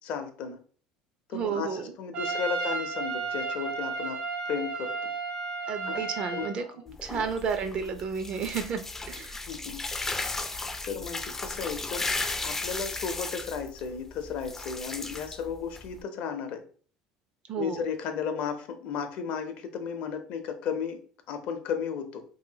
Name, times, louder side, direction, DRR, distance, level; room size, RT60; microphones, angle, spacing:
voice 1, 0.0-0.6 1.3-4.2 4.5-5.1 5.9-6.0 6.3-7.2 9.5-9.8 10.9-12.1 12.4-16.6 17.6-21.0 21.3-22.2, left 6 dB, 65° left, 7 dB, 0.6 m, -34 dB
voice 2, 1.3-1.9 5.7-6.6 7.0-8.8 9.1-9.4 17.5-17.8, right 6 dB, 50° right, 8 dB, 0.5 m, -31 dB
Trumpet, 2.1-6.6, right 4 dB, 65° right, 1.3 m, -33 dB
sound 1, 6.9-16.0, left 3 dB, 15° left, 0.3 m, -35 dB
2.7 x 2.6 x 2.7 m, 0.43 s
supercardioid pair, 90°, 2 cm